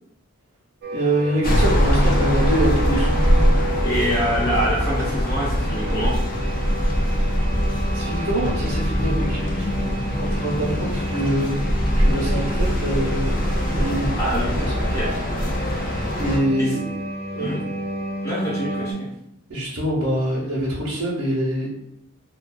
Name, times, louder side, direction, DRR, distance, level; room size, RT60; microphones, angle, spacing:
sound 1, 0.8-18.9, right 1 dB, 45° right, 0.4 m, -32 dB
voice 1, 0.9-3.2 7.9-9.8 10.2-11.6 12.0-14.1 14.6-15.2 16.2-16.8 17.3-17.6 19.5-21.7, right 1 dB, 85° right, -8 dB, 0.8 m, -25 dB
sound 2, 1.4-16.4, equal, 40° left, 0.4 m, -22 dB
voice 2, 3.8-6.1 14.2-15.1 16.6-16.7 17.4-17.6 18.2-19.1, equal, 15° left, -8 dB, 1.0 m, -26 dB
2.4 x 2.2 x 2.3 m, 0.84 s
head